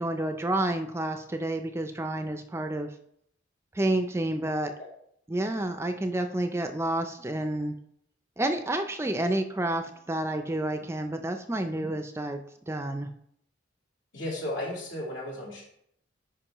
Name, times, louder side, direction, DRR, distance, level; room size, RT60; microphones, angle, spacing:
voice 1, 0.0-2.9 3.7-4.7 5.3-7.7 8.4-12.4 12.7-13.1, right 1 dB, 15° right, 7 dB, 0.3 m, -29 dB
voice 2, 14.1-15.6, left 1 dB, 75° left, -4 dB, 2.9 m, -34 dB
9.9 x 5.1 x 2.9 m, 0.72 s
head